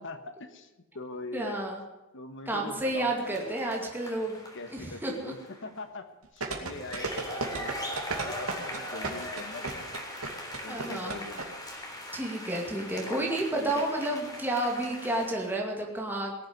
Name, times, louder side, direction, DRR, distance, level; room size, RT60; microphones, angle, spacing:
voice 1, 0.0-1.7 2.1-3.9 4.5-6.1 6.3-10.0 10.6-11.6 12.9-14.0, left 2 dB, 60° left, 8 dB, 1.5 m, -43 dB
voice 2, 1.3-1.8 2.5-4.4 4.7-5.3 6.8-7.6 10.7-11.2 12.1-16.3, right 1 dB, 10° right, -1 dB, 2.3 m, -31 dB
sound 1, 3.2-5.7 6.6-15.6, left 1 dB, 20° left, 3.6 m, -41 dB
sound 2, 6.4-11.5 11.7-11.8, right 3 dB, 75° right, 2.5 m, -33 dB
18.0 x 7.7 x 9.6 m, 1.0 s
head